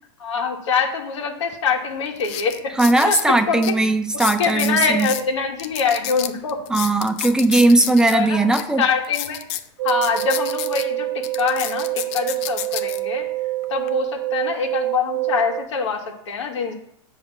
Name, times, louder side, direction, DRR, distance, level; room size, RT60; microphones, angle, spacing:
voice 1, 0.2-3.6 4.1-6.6 8.1-8.5 8.8-9.4 9.8-13.3 13.7-16.7, left 5 dB, 85° left, 2 dB, 1.6 m, -24 dB
sound 1, 1.5-1.6 2.2-3.3 3.6-3.7 4.1-5.2 5.6-8.2 8.5-8.6 9.0-10.8 11.2-13.0 13.6-13.9, left 12 dB, 45° left, 0.6 m, -30 dB
voice 2, 2.8-5.1 6.7-8.8, right 2 dB, 5° right, 6 dB, 0.5 m, -18 dB
sound 2, 9.8-15.6, right 18 dB, 50° right, 1.1 m, -26 dB
7.7 x 3.2 x 6.2 m, 0.73 s
supercardioid pair, 135°, 15 cm